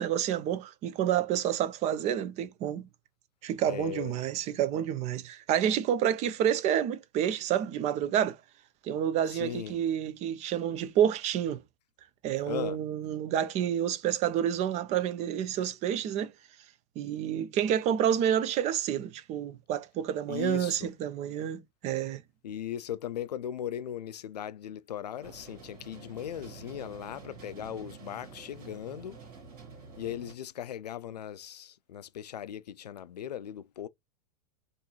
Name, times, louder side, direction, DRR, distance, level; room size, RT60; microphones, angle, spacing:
voice 1, 0.0-2.9 3.4-8.4 8.8-11.6 12.2-16.3 17.0-22.2, right 10 dB, 35° right, 0.5 m, -29 dB
voice 2, 3.6-4.1 9.3-9.7 12.5-12.8 20.3-20.9 22.4-29.2 30.0-33.9, left 10 dB, 85° left, 0.4 m, -38 dB
sound 1, 25.2-30.3, right 5 dB, 65° right, 1.8 m, -49 dB
3.6 x 2.6 x 3.0 m
hypercardioid pair, 105°, 20 cm